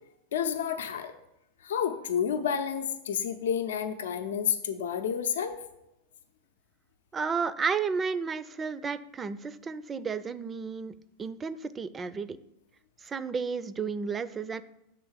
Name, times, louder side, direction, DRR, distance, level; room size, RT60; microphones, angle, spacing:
voice 1, 0.3-1.1 1.6-5.6, left 8 dB, 85° left, 6 dB, 0.6 m, -30 dB
voice 2, 7.1-10.9 11.2-12.4 13.0-14.6, right 5 dB, 25° right, 15 dB, 0.4 m, -32 dB
6.5 x 3.8 x 6.3 m, 0.86 s
hypercardioid pair, 110°, 0 cm